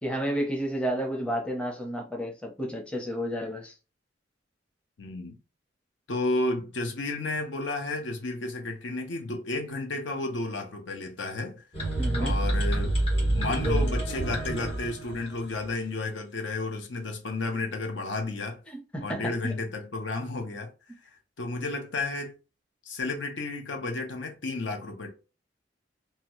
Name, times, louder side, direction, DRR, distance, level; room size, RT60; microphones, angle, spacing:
voice 1, 0.0-3.7 12.0-12.4 18.7-19.5, equal, 5° left, 0.6 m, -31 dB
voice 2, 5.0-5.4 6.1-11.6 12.2-13.0 13.3-18.6 19.0-20.7 21.4-22.3 22.8-25.1, left 2 dB, 70° left, 0.7 m, -32 dB
sound 1, 11.7-15.7, right 1 dB, 30° left, 1.7 m, -27 dB
2.8 x 2.3 x 3.0 m
head